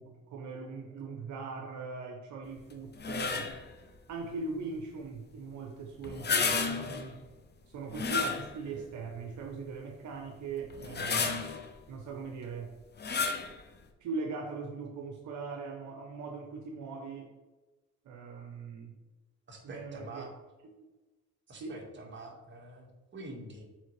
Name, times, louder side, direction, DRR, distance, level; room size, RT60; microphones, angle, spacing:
voice 1, 0.0-3.6 4.1-7.2 7.7-11.5 11.9-12.8 14.0-17.3 18.0-18.9 19.6-20.2 20.8-20.9 21.6-21.8, right 4 dB, 70° right, 3 dB, 0.8 m, -40 dB
sound 1, 3.0-3.7 6.0-7.1 7.9-8.8 9.4-9.5 10.7-11.7 13.0-13.5, left 5 dB, 35° left, 0.8 m, -31 dB
voice 2, 19.5-20.3 21.5-23.7, right 2 dB, 40° right, 0 dB, 1.7 m, -46 dB
7.3 x 4.3 x 3.3 m, 1.2 s
cardioid pair, 90°, 30 cm